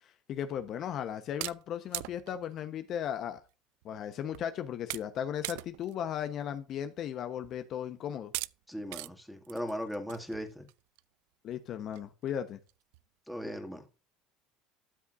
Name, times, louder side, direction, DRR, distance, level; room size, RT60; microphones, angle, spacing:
voice 1, 0.3-3.4 3.8-8.3 11.4-12.6, left 9 dB, 50° left, 0.9 m, -36 dB
sound 1, 0.5-0.7 1.4-2.5 3.4-3.5 3.8-3.9 4.3-4.5 4.9-5.2 5.4-5.9 6.4-6.5 7.4-7.6 8.3-8.5 8.9-9.1 9.4-11.0 11.5-11.6 11.9-12.0 12.3-12.4 12.7-13.0, right 23 dB, 80° right, 0.3 m, -40 dB
voice 2, 8.7-10.7 13.3-13.9, equal, ahead, 2.0 m, -38 dB
12.5 x 7.1 x 2.5 m
supercardioid pair, 100°, 0 cm